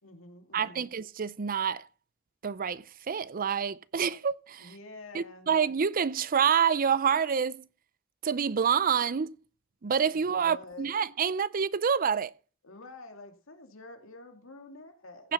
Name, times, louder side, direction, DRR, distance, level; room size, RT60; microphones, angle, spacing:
voice 1, 0.0-0.9 4.6-5.5 10.1-10.9 12.6-15.3, left 2 dB, 75° left, 2.5 m, -48 dB
voice 2, 0.5-1.9 2.4-4.7 5.1-7.7 8.2-9.3 9.8-12.3 15.2-15.3, right 7 dB, 45° right, 0.5 m, -27 dB
15.5 x 7.0 x 5.5 m
head